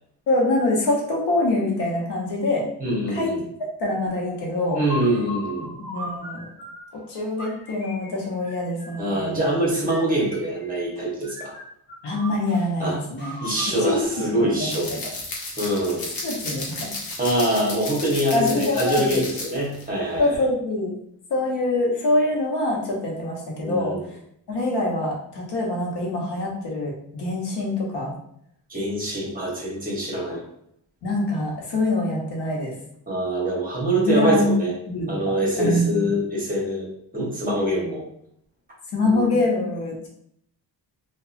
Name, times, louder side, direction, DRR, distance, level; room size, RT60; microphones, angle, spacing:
voice 1, 0.3-2.7 3.1-4.8 5.8-6.5 6.9-9.4 12.0-13.4 13.8-14.2 14.6-15.0 16.2-16.9 18.3-19.1 20.2-20.9 21.3-24.0 24.5-28.1 31.0-32.7 34.0-34.5 34.9-35.9 38.9-40.1, left 2 dB, 90° left, -2 dB, 0.9 m, -24 dB
voice 2, 2.8-3.4 4.7-5.7 9.0-11.5 12.8-13.0 13.4-14.9 15.6-16.0 17.2-20.4 23.6-24.0 28.7-30.4 33.1-34.7 35.1-36.9 37.1-38.0 39.0-39.4, right 1 dB, 20° right, -4 dB, 1.0 m, -24 dB
sound 1, 4.2-6.9 7.4-9.2 9.8-11.0 11.2-12.7 13.2-15.0, left 1 dB, 25° left, 1.2 m, -38 dB
sound 2, 14.7-19.8 20.2-20.4, left 2 dB, 60° left, 0.8 m, -33 dB
2.8 x 2.2 x 2.5 m, 0.70 s
wide cardioid pair, 130°, 39 cm